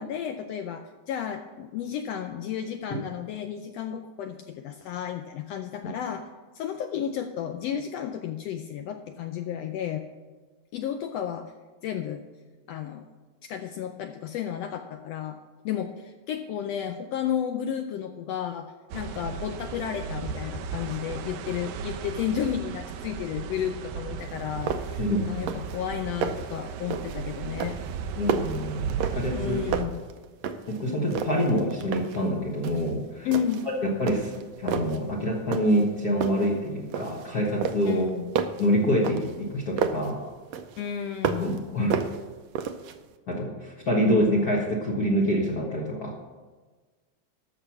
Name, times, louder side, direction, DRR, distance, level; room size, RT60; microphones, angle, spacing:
voice 1, 0.0-6.3 6.5-10.0 10.7-11.5 11.8-12.2 12.7-13.1 13.4-15.4 15.6-27.8 29.3-30.0 33.2-33.7 37.8-38.3 40.8-41.6, left 9 dB, 80° left, 6 dB, 1.5 m, -32 dB
sound 1, 18.9-29.8, right 6 dB, 90° right, 2.1 m, -35 dB
sound 2, 24.2-24.3 24.7-25.1 25.3-25.8 26.0-26.5 26.9-27.2 27.6-29.4 29.7-30.8 31.1-32.2 32.6-32.9 33.3-33.7 34.1-35.0 35.5-35.9 36.2-37.3 37.6-40.1 40.5-41.6 41.9-43.0, right 7 dB, 75° right, 1.7 m, -31 dB
voice 2, 25.0-25.3 28.1-29.8 30.7-33.3 33.8-38.1 38.6-40.2 41.4-42.0 43.3-46.2, equal, 50° left, -2 dB, 1.2 m, -26 dB
13.5 x 6.0 x 5.9 m, 1.3 s
omnidirectional pair, 3.4 m